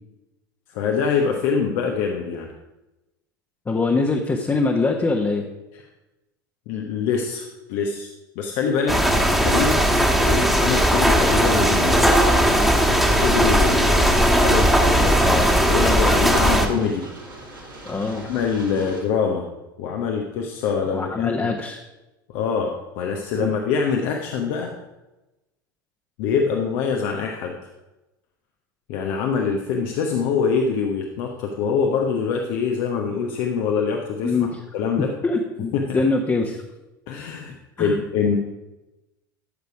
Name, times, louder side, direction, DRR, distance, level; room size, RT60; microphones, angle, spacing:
voice 1, 0.7-2.5 5.7-5.8 6.7-8.1 8.3-9.0 9.2-9.8 10.2-17.0 17.6-17.7 18.2-19.4 19.8-21.5 22.3-24.7 26.2-27.5 28.9-34.3 34.7-35.1 35.7-36.0 37.1-38.4, left 6 dB, 60° left, 2 dB, 1.2 m, -24 dB
voice 2, 3.7-5.4 15.2-16.7 17.8-18.2 18.7-18.9 20.9-21.8 23.3-23.5 34.2-34.5 35.2-36.6 37.8-38.0, left 3 dB, 20° left, 0 dB, 1.3 m, -24 dB
sound 1, 8.9-16.7, equal, ahead, 1.6 m, -18 dB
sound 2, 11.3-19.0, right 2 dB, 90° right, 3.8 m, -40 dB
13.5 x 6.8 x 4.9 m, 1.0 s
figure-of-eight pair, 75°, 11 cm